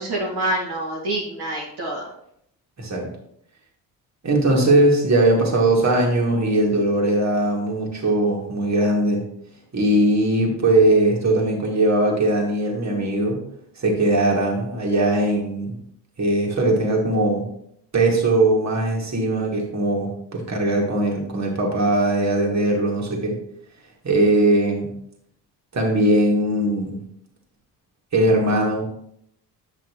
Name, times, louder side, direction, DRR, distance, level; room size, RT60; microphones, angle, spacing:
voice 1, 0.0-2.1, right 1 dB, 55° right, -4 dB, 2.0 m, -26 dB
voice 2, 4.2-9.2 9.7-13.4 13.8-15.8 16.2-17.5 17.9-23.3 24.0-24.9 25.7-27.0 28.1-28.8, right 1 dB, 35° right, -1 dB, 2.4 m, -20 dB
8.2 x 5.8 x 3.2 m, 0.72 s
hypercardioid pair, 50°, 48 cm